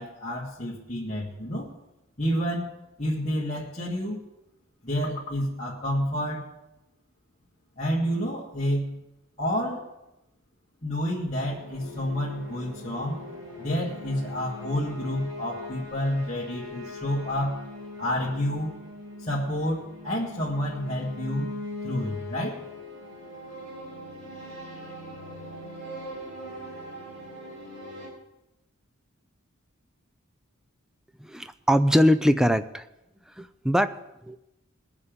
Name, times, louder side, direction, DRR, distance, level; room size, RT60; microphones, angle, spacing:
voice 1, 0.0-1.7 2.2-4.2 4.8-6.5 7.8-9.0 9.4-9.9 10.8-13.2 13.6-17.6 18.0-18.8 19.2-21.5 21.8-22.6, equal, 30° left, -7 dB, 1.9 m, -29 dB
sound 1, 11.4-28.1, left 1 dB, 65° right, 5.7 m, -41 dB
voice 2, 31.2-32.9 33.4-34.4, equal, 5° right, 12 dB, 0.4 m, -22 dB
20.5 x 7.1 x 5.2 m, 0.93 s
head